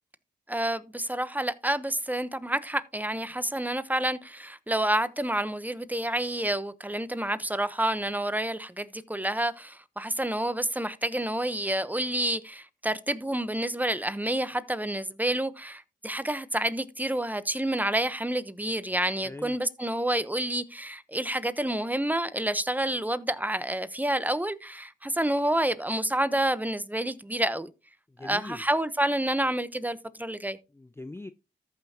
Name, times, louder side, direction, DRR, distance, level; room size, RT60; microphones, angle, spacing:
voice 1, 0.5-27.7 28.2-30.6, right 1 dB, 10° right, 1.0 m, -29 dB
voice 2, 19.2-19.6 28.1-28.6 30.7-31.3, left 2 dB, 10° left, 0.5 m, -41 dB
14.0 x 5.7 x 2.9 m
supercardioid pair, 45°, 20 cm